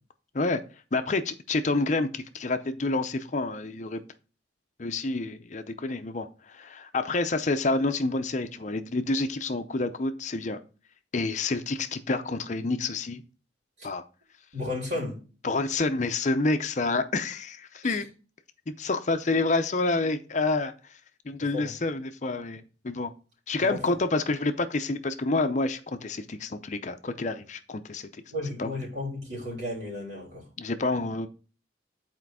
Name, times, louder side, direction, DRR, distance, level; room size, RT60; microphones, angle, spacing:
voice 1, 0.9-4.0 4.8-10.6 11.1-13.2 13.8-14.0 15.4-18.1 18.7-20.7 21.3-23.1 23.5-28.1 28.6-28.7 30.6-31.3, left 3 dB, 40° left, 9 dB, 0.6 m, -28 dB
voice 2, 14.5-15.2 17.8-18.0 21.5-21.7 23.6-23.8 28.3-30.5, left 1 dB, 65° right, -4 dB, 3.5 m, -34 dB
8.2 x 4.4 x 4.8 m, 0.35 s
head